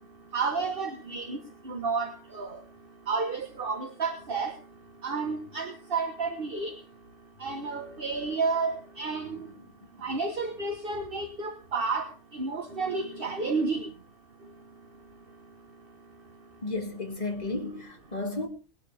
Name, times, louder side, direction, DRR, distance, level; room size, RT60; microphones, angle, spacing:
voice 1, 0.3-1.4 1.6-2.6 3.1-4.5 5.0-6.7 7.4-9.5 10.0-13.9, right 4 dB, 40° right, 1.5 m, -31 dB
voice 2, 16.6-18.5, left 2 dB, 30° left, 2.3 m, -33 dB
20.5 x 11.5 x 3.5 m
omnidirectional pair, 1.5 m